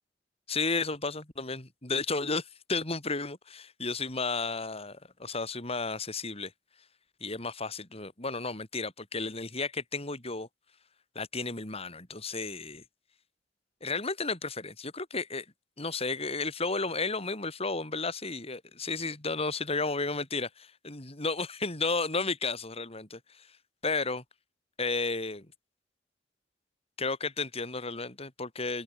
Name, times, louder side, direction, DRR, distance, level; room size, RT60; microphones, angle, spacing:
voice 1, 0.5-6.5 7.2-10.5 11.1-12.8 13.8-15.4 15.8-23.5 23.8-24.2 24.8-25.5 27.0-28.8, left 3 dB, 35° left, 4.4 m, -33 dB
open air
head